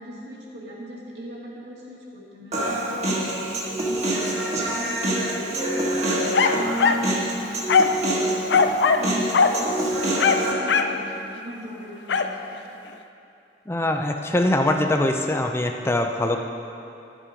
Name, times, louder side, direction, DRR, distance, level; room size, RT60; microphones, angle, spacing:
voice 1, 0.0-8.4 8.8-12.6, equal, 65° right, -5 dB, 2.1 m, -40 dB
Human voice, 2.5-10.5, right 1 dB, 40° right, 1.4 m, -25 dB
sound 1, 6.3-7.1 7.7-8.0 8.5-9.1 9.3-9.6 10.2-11.0 12.1-12.3, left 5 dB, 70° left, 0.5 m, -19 dB
voice 2, 13.7-16.4, left 1 dB, 15° left, 3 dB, 0.5 m, -23 dB
11.5 x 7.4 x 5.1 m, 2.7 s
head